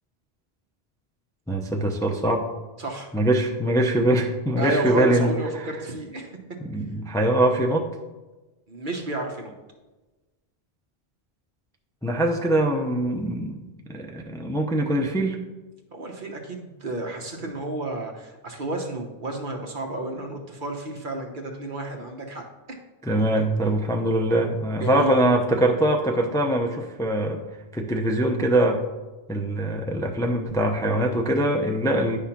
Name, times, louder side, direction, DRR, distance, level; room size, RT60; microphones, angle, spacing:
voice 1, 1.5-2.5 3.1-5.3 6.6-7.9 12.0-13.6 13.9-15.4 23.0-27.4 27.7-28.8 29.3-32.2, right 1 dB, 5° left, 2 dB, 0.5 m, -23 dB
voice 2, 2.8-3.1 4.6-6.4 8.7-9.5 15.9-22.4 24.8-25.2, right 2 dB, 55° right, 2 dB, 1.2 m, -31 dB
9.8 x 3.6 x 5.8 m, 1.2 s
omnidirectional pair, 1.1 m